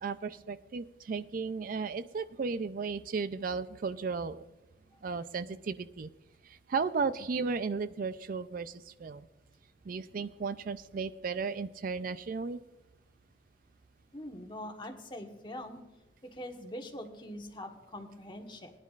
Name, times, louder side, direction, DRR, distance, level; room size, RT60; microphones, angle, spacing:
voice 1, 0.0-4.5 5.0-6.1 6.4-9.3 9.9-12.6, right 5 dB, 50° right, 13 dB, 0.4 m, -35 dB
voice 2, 14.1-15.8 16.2-18.7, left 1 dB, 25° left, 4 dB, 1.2 m, -43 dB
19.5 x 10.5 x 2.4 m, 1.0 s
head